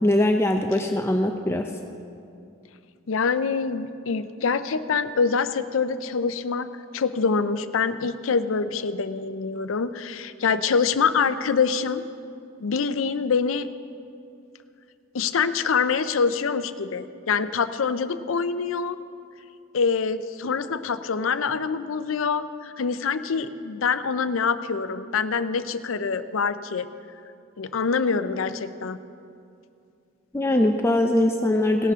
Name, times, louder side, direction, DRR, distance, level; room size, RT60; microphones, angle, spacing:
voice 1, 0.0-1.7 30.3-31.9, left 1 dB, 10° left, 3 dB, 0.5 m, -21 dB
voice 2, 3.1-6.7 6.9-12.0 12.6-13.7 15.1-19.0 19.7-26.9 27.6-29.0, left 5 dB, 70° left, 12 dB, 0.5 m, -25 dB
18.0 x 11.5 x 3.6 m, 2.5 s
head